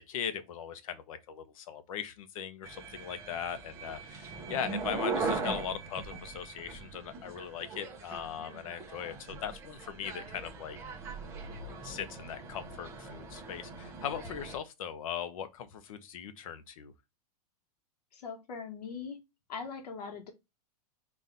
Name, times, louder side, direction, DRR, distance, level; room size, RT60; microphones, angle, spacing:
voice 1, 0.0-10.8 11.8-16.9, left 8 dB, 60° left, 0.6 m, -39 dB
sound 1, 2.6-14.6, right 3 dB, 15° right, 0.5 m, -40 dB
voice 2, 18.1-19.2 19.5-20.3, left 5 dB, 85° left, 1.1 m, -41 dB
4.1 x 2.4 x 3.7 m
supercardioid pair, 165°, 20 cm